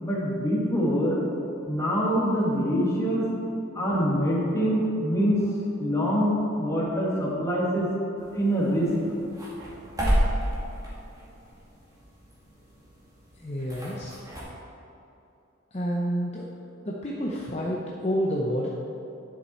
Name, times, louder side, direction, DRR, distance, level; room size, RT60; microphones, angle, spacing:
voice 1, 0.0-3.2 3.5-5.4 5.8-8.9, equal, 15° left, -5 dB, 1.9 m, -25 dB
sound 1, 8.2-14.4, equal, 15° right, 2.0 m, -32 dB
voice 2, 13.3-14.2 15.7-16.5 16.8-18.7, equal, 30° left, -3 dB, 0.7 m, -29 dB
10.5 x 7.1 x 4.3 m, 2.8 s
head